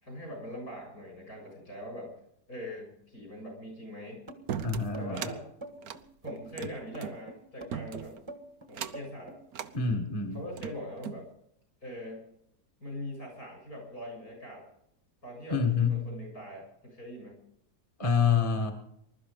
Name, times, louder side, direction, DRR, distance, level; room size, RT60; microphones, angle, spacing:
voice 1, 0.0-2.1 2.5-4.2 5.0-5.4 6.2-8.1 8.7-9.4 10.3-11.3 11.8-12.2 12.8-14.7 15.2-17.4, left 1 dB, 65° left, 2 dB, 7.7 m, -42 dB
sound 1, 4.3-9.4, right 2 dB, 20° right, 1.4 m, -45 dB
sound 2, 4.5-5.4 5.8-7.2 7.7-8.2 8.7-9.1 9.5-9.7 10.3-11.2, right 9 dB, 65° right, 1.3 m, -38 dB
voice 2, 4.6-5.3 9.7-10.4 15.5-16.0 18.0-18.7, left 6 dB, 20° left, 4 dB, 1.6 m, -27 dB
21.0 x 12.5 x 5.2 m, 0.73 s
omnidirectional pair, 1.7 m